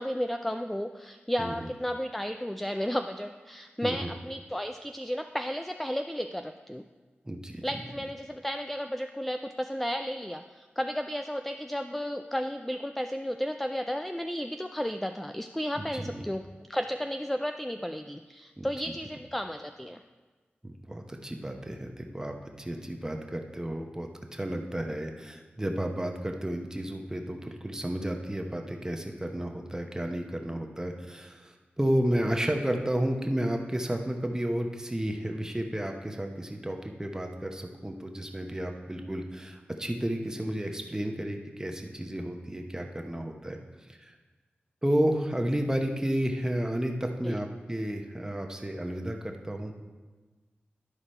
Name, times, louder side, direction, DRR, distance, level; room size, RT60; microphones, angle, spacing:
voice 1, 0.0-6.8 7.6-16.4 16.7-20.0 47.2-47.4, equal, 5° left, 6 dB, 0.3 m, -33 dB
voice 2, 1.4-1.7 3.8-4.1 7.2-7.6 15.8-16.2 18.6-18.7 20.6-43.6 43.9-44.1 44.8-49.7, right 1 dB, 15° right, 3 dB, 0.9 m, -32 dB
11.5 x 4.9 x 4.3 m, 1.3 s
cardioid pair, 55°, 4 cm